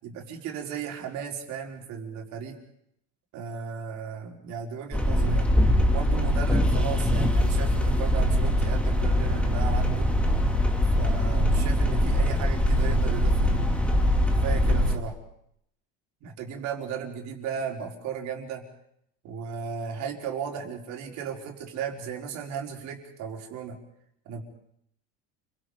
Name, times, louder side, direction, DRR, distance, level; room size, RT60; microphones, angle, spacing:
voice 1, 0.0-2.6 3.3-5.5 5.8-10.2 11.0-13.6 14.3-15.2 16.2-18.6 19.2-23.8 24.2-24.4, right 7 dB, 60° right, 1 dB, 4.9 m, -35 dB
sound 1, 4.9-15.0, equal, 5° left, 2.4 m, -22 dB
29.5 x 24.0 x 5.2 m, 0.72 s
supercardioid pair, 120°, 31 cm